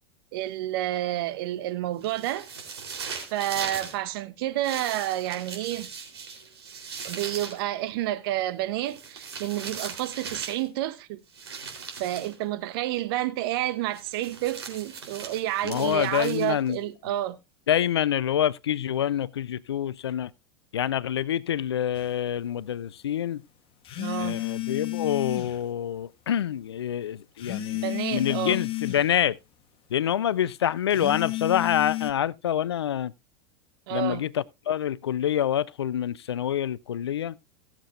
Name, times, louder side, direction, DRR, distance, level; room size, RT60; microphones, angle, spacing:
voice 1, 0.3-2.5 3.3-5.9 7.0-11.2 12.0-17.4 24.0-24.4 27.8-28.6 33.9-34.2, right 14 dB, 65° right, 1.0 m, -30 dB
sound 1, 2.0-4.0 4.6-7.6 8.9-10.7 11.3-12.4 13.9-16.7, right 5 dB, 80° right, 3.8 m, -39 dB
voice 2, 15.6-16.8 17.7-20.3 20.7-23.4 24.2-29.4 29.9-33.1 33.9-37.4, left 10 dB, 85° left, 0.4 m, -27 dB
sound 2, 21.9-22.1 23.8-25.6 27.4-29.1 30.9-32.1, left 17 dB, 40° left, 1.6 m, -31 dB
18.0 x 7.4 x 2.5 m
hypercardioid pair, 95°, 13 cm